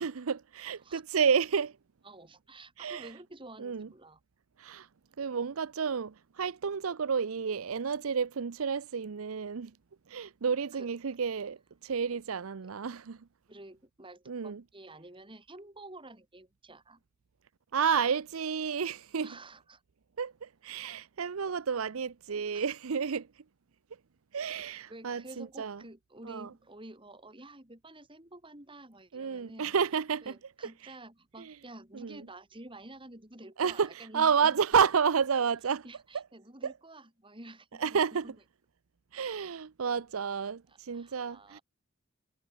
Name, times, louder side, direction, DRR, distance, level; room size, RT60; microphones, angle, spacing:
voice 1, 0.0-1.8 2.8-3.1 3.6-3.9 4.6-4.9 5.2-9.7 10.1-13.3 14.3-14.6 17.7-19.4 20.2-23.3 24.3-25.8 26.3-26.5 29.1-30.3 30.8-30.9 31.4-31.5 31.9-32.2 33.6-35.8 36.1-36.2 36.6-36.7 37.8-38.3 39.1-41.6, right 6 dB, 85° right, 0.6 m, -30 dB
voice 2, 2.0-4.2 10.7-10.9 13.5-17.0 19.2-19.8 22.3-22.6 24.9-29.7 30.2-34.6 35.8-38.3 40.7-41.6, right 2 dB, 25° right, 4.2 m, -50 dB
head